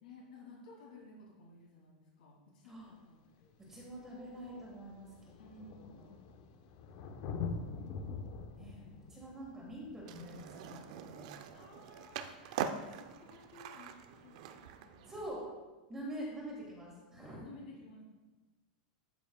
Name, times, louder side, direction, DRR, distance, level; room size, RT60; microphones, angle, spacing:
voice 1, 0.0-3.5 5.4-6.4 6.8-7.9 11.5-14.4 14.8-15.3 17.4-18.0, left 3 dB, 80° left, -4 dB, 2.2 m, -56 dB
Thunder, 2.9-3.0 4.0-4.1 4.3-11.6 13.3-13.4, left 5 dB, 40° left, 0.6 m, -45 dB
voice 2, 3.7-5.1 5.6-6.1 8.6-11.4 15.1-15.4 15.9-17.5, equal, 10° right, -4 dB, 1.6 m, -46 dB
Skateboard, 10.0-15.3, right 8 dB, 50° right, 0.5 m, -43 dB
12.5 x 5.2 x 2.2 m, 1.2 s
supercardioid pair, 165°, 5 cm